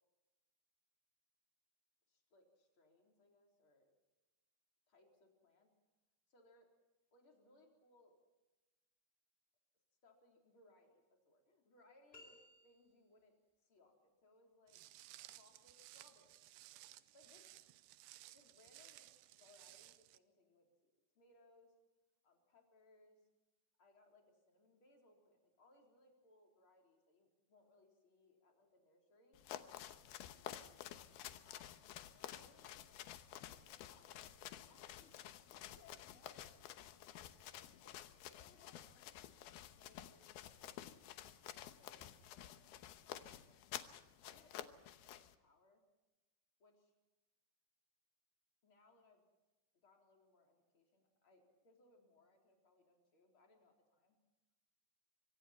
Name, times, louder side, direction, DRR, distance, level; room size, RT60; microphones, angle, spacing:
voice 1, 2.1-3.9 4.9-5.7 6.3-6.7 7.1-8.2 10.0-12.4 12.6-14.8 15.2-16.5 16.7-17.6 18.3-21.7 22.2-23.3 23.8-29.4 31.4-33.0 33.3-36.6 36.9-40.9 41.4-43.8 44.2-45.9 46.6-46.9 48.6-49.2 49.8-54.2, left 2 dB, 30° left, 1 dB, 4.4 m, -70 dB
sound 1, 12.1-13.2, left 2 dB, 10° left, 4.5 m, -62 dB
Walk footsteps, 14.7-20.2, right 15 dB, 80° right, 2.8 m, -59 dB
sound 2, 29.3-45.3, left 12 dB, 80° left, 2.8 m, -52 dB
25.0 x 25.0 x 4.4 m, 1.1 s
omnidirectional pair, 4.7 m